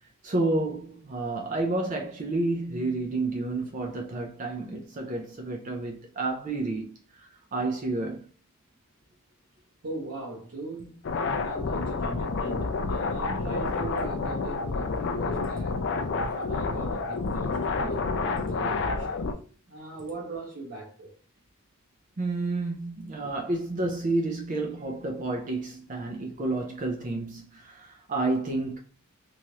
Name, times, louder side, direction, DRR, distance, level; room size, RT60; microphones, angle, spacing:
voice 1, 0.2-7.0 7.5-8.3 22.2-28.8, right 2 dB, 35° right, 0.4 m, -30 dB
voice 2, 9.8-15.8 16.3-21.1, right 3 dB, 65° right, 0.8 m, -40 dB
sound 1, 11.0-19.3, left 3 dB, 55° left, 0.4 m, -29 dB
3.1 x 2.4 x 2.8 m
head